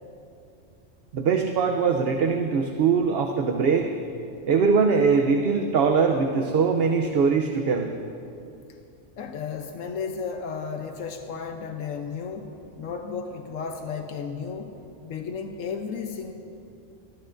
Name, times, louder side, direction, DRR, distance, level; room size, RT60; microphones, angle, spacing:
voice 1, 1.1-3.9 4.5-7.9, right 5 dB, 60° right, 3 dB, 0.8 m, -22 dB
voice 2, 9.2-16.3, left 5 dB, 90° left, 4 dB, 1.2 m, -34 dB
24.0 x 14.0 x 2.6 m, 2.7 s
omnidirectional pair, 1.3 m